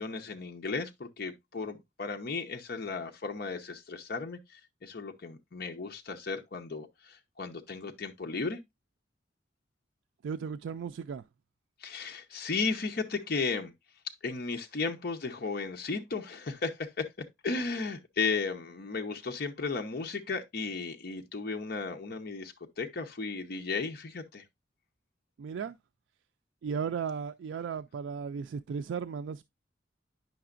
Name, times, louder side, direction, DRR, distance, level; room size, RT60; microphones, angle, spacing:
voice 1, 0.0-8.6 11.8-13.7 14.2-24.4, left 4 dB, 55° left, 0.7 m, -35 dB
voice 2, 10.2-11.2 25.4-25.8 26.6-29.4, right 6 dB, 80° right, 0.3 m, -35 dB
9.2 x 5.8 x 2.4 m
head